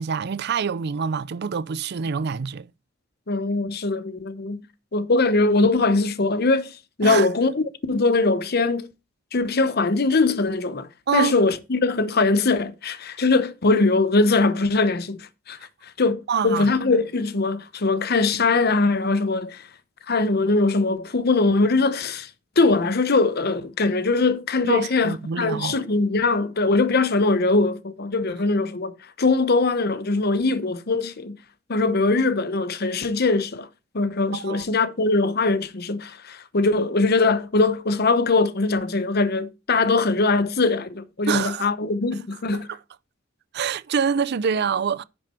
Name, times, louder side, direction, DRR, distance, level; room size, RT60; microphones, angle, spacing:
voice 1, 0.0-2.7 7.0-7.3 11.1-11.3 16.3-16.7 24.6-25.8 34.3-34.6 41.3-41.7 42.5-42.8 43.5-45.0, right 6 dB, 55° right, 0.5 m, -26 dB
voice 2, 3.3-4.6 4.9-8.9 9.3-10.9 11.1-15.6 16.0-19.7 20.1-22.3 22.6-31.4 31.7-33.7 33.9-42.7, left 3 dB, 55° left, 0.9 m, -21 dB
10.0 x 6.0 x 4.4 m
head